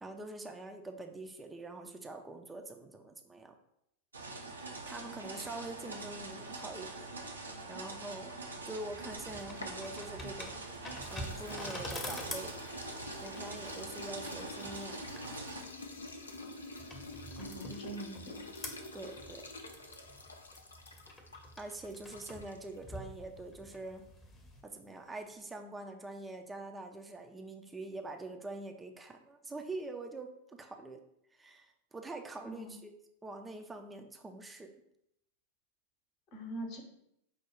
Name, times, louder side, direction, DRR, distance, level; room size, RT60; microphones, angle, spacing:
voice 1, 0.0-3.5 4.6-7.1 7.7-8.4 8.6-10.8 11.1-12.6 13.2-15.0 18.9-19.4 21.6-24.1 24.6-31.0 31.4-32.9 33.2-34.7, right 2 dB, 10° right, 5 dB, 0.4 m, -45 dB
sound 1, 4.1-15.6, right 3 dB, 80° right, 0.6 m, -44 dB
sound 2, 8.9-24.6, left 1 dB, 20° left, 0.8 m, -47 dB
sound 3, 9.1-10.6 11.0-22.8, left 2 dB, 75° left, 0.5 m, -47 dB
voice 2, 17.4-18.5 32.4-32.8 36.3-36.8, right 1 dB, 45° left, 3 dB, 0.9 m, -43 dB
4.9 x 2.3 x 4.5 m, 0.78 s
figure-of-eight pair, 90°, 0 cm